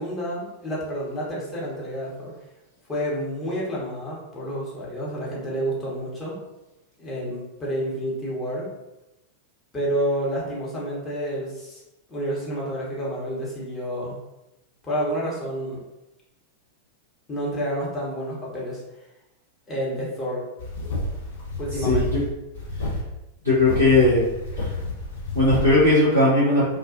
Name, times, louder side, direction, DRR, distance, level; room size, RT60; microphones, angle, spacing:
voice 1, 0.0-2.3 2.9-6.4 7.0-8.7 9.7-11.8 12.1-14.2 14.8-15.8 17.3-18.8 19.7-20.4 21.6-22.1, equal, 20° left, -6 dB, 0.9 m, -29 dB
sound 1, 20.6-22.3 22.5-23.0 23.5-25.8, left 2 dB, 60° left, 0.7 m, -29 dB
voice 2, 21.8-22.2 23.4-24.2 24.6-24.7 25.3-26.8, left 2 dB, 85° left, -12 dB, 0.9 m, -18 dB
2.3 x 2.3 x 2.5 m, 0.95 s
figure-of-eight pair, 90°, 0 cm